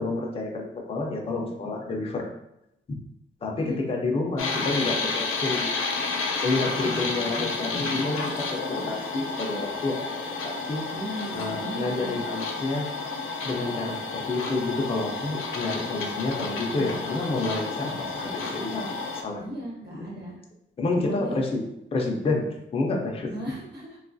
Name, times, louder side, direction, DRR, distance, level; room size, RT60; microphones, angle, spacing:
voice 1, 0.0-2.3 3.4-5.7 6.4-10.1 10.4-10.8 11.3-12.9 13.4-19.4 20.8-21.6 21.9-22.4 22.7-23.3, left 3 dB, 30° left, 0 dB, 0.4 m, -29 dB
sound 1, 4.4-19.2, left 4 dB, 85° left, 0.5 m, -31 dB
voice 2, 6.6-8.0 10.9-12.2 16.3-17.1 19.4-20.4 20.9-21.4 23.3-24.0, equal, 55° right, -4 dB, 1.1 m, -37 dB
3.5 x 2.3 x 2.5 m, 0.83 s
wide cardioid pair, 130°, 20 cm